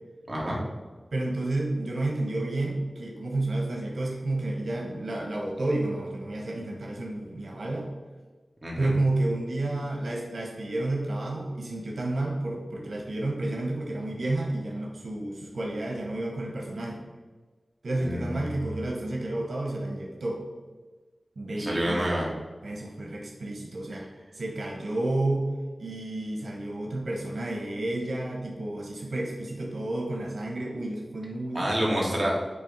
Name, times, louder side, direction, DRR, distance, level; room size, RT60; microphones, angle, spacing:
voice 1, 0.3-0.6 8.6-8.9 17.9-18.6 21.5-22.3 31.5-32.3, equal, 35° right, -4 dB, 2.1 m, -28 dB
voice 2, 1.1-7.9 8.8-17.0 17.8-20.4 21.4-22.1 22.6-24.1 24.3-25.5 25.8-31.7, right 2 dB, 85° right, -1 dB, 1.1 m, -31 dB
7.6 x 3.3 x 5.4 m, 1.3 s
wide cardioid pair, 70°, 0 cm